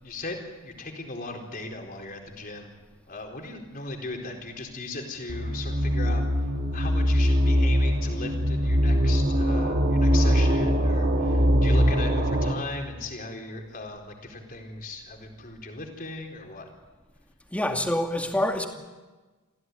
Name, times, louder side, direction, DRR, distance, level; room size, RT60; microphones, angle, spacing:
voice 1, 0.0-2.7 3.1-6.2 6.7-16.7, left 2 dB, 40° left, 1 dB, 4.3 m, -38 dB
sound 1, 5.3-12.5, equal, 45° right, 2.3 m, -22 dB
voice 2, 17.5-18.7, left 1 dB, 5° left, 3 dB, 2.4 m, -26 dB
26.5 x 16.0 x 9.5 m, 1.2 s
head